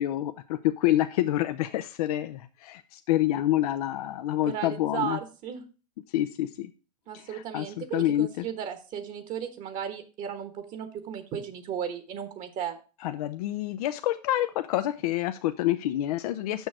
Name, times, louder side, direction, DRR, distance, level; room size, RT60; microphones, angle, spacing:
voice 1, 0.0-5.2 6.1-6.7 7.1-8.5 13.0-16.7, left 14 dB, 65° left, 10 dB, 0.5 m, -27 dB
voice 2, 4.4-5.6 7.1-12.8, right 9 dB, 40° right, 8 dB, 1.2 m, -35 dB
6.4 x 6.3 x 4.7 m, 0.34 s
hypercardioid pair, 105°, 21 cm